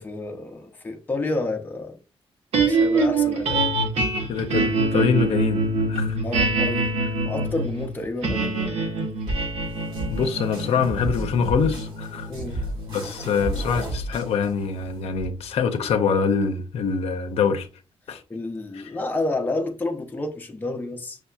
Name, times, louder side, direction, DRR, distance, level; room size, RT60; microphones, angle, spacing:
voice 1, 0.0-2.0 2.6-3.6 6.2-6.9 7.2-8.8 12.3-12.6 18.3-21.2, left 2 dB, 15° left, 0.6 m, -30 dB
sound 1, 2.5-14.8, right 3 dB, 85° right, 1.3 m, -25 dB
voice 2, 4.3-6.2 10.1-12.6 12.9-17.7 18.1-18.2 18.7-18.9, left 6 dB, 75° left, 0.6 m, -25 dB
sound 2, 9.3-15.2, right 1 dB, 50° right, 2.0 m, -33 dB
6.4 x 2.7 x 2.3 m
wide cardioid pair, 165°, 10 cm